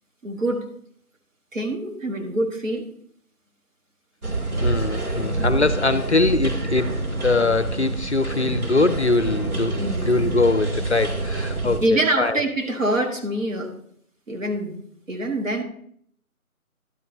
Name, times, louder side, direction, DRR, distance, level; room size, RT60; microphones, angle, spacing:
voice 1, 0.2-0.7 1.5-2.9 5.6-5.7 9.4-10.3 11.6-13.7 14.3-14.8 15.1-15.6, right 1 dB, 60° right, 1.8 m, -25 dB
sound 1, 4.2-11.8, right 2 dB, 80° right, 2.5 m, -27 dB
voice 2, 4.6-6.9 7.2-9.8 10.1-12.4, left 3 dB, 50° left, 0.5 m, -22 dB
11.5 x 9.4 x 2.8 m
figure-of-eight pair, 160°, 44 cm